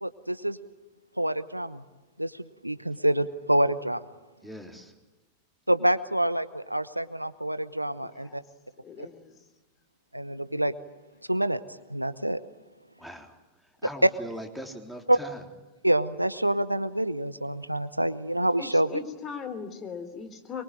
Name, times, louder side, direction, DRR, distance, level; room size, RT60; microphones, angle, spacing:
voice 1, 0.0-0.6 1.2-1.8 2.2-4.0 5.7-8.4 9.0-9.1 10.1-10.7 11.3-11.6 11.9-12.4 14.0-14.1 15.1-15.2 15.8-19.0, right 1 dB, 85° right, 14 dB, 0.9 m, -26 dB
voice 2, 4.4-4.9 13.0-13.3 13.8-15.4, equal, ahead, 3 dB, 3.6 m, -40 dB
voice 3, 8.0-8.4 8.8-9.3 18.6-20.6, left 6 dB, 25° left, 9 dB, 3.2 m, -39 dB
24.0 x 23.5 x 9.0 m, 1.1 s
figure-of-eight pair, 90°, 0 cm